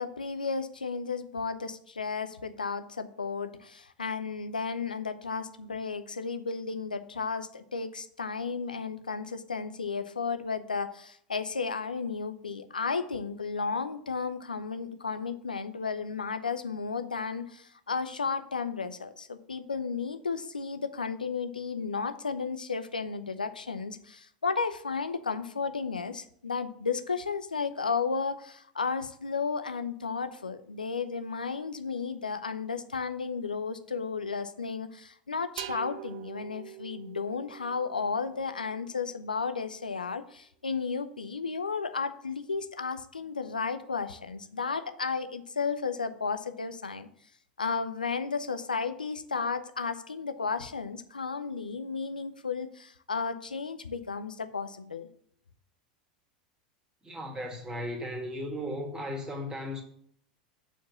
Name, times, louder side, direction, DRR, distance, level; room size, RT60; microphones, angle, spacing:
voice 1, 0.0-47.1 47.6-55.1, left 5 dB, 85° left, 0.6 m, -33 dB
sound 1, 35.6-39.2, right 17 dB, 55° right, 0.4 m, -45 dB
voice 2, 57.0-59.8, equal, 15° right, 2.0 m, -36 dB
7.1 x 4.6 x 7.0 m
figure-of-eight pair, 85°, 4 cm